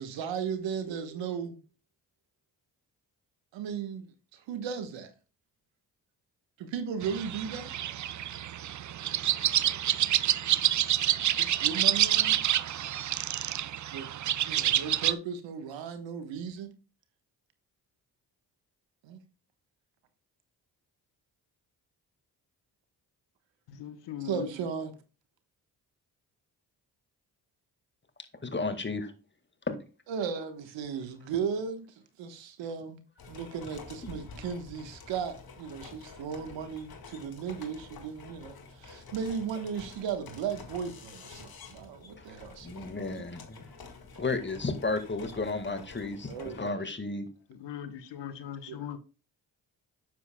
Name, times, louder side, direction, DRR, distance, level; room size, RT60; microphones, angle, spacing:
voice 1, 0.0-1.6 3.5-5.1 6.6-7.7 11.4-12.4 13.9-16.7 19.0-19.2 24.2-24.9 30.1-31.9 32.2-33.0 33.3-43.1 46.3-46.8 48.7-48.8, right 6 dB, 80° right, 1.3 m, -36 dB
sound 1, 7.0-15.1, right 11 dB, 40° right, 0.5 m, -28 dB
voice 2, 23.7-24.5 47.5-49.0, left 10 dB, 70° left, 1.1 m, -40 dB
voice 3, 28.4-29.1 29.7-29.8 42.2-42.3 42.6-43.7 44.2-47.3, left 3 dB, 25° left, 1.8 m, -33 dB
sound 2, 33.2-46.7, left 4 dB, 55° left, 1.8 m, -49 dB
9.4 x 7.5 x 2.2 m
supercardioid pair, 45°, 44 cm